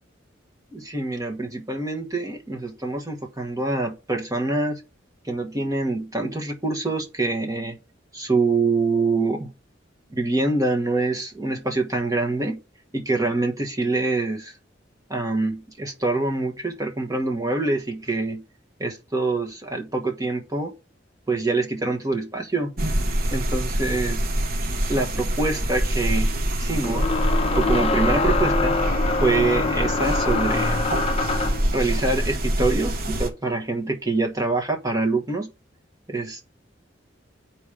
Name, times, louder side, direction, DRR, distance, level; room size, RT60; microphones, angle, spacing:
voice 1, 0.7-4.8 5.2-7.8 8.1-9.5 10.1-12.6 12.9-14.5 15.1-18.4 18.8-20.7 21.3-22.7 23.3-24.3 24.9-27.1 27.5-28.8 29.2-30.8 31.7-35.5 36.1-36.4, right 3 dB, 20° right, 1.3 m, -25 dB
sound 1, 22.8-33.3, right 1 dB, 55° right, 1.0 m, -25 dB
sound 2, 24.9-25.0 26.8-31.7, left 3 dB, 35° left, 0.7 m, -24 dB
8.2 x 4.4 x 5.0 m
head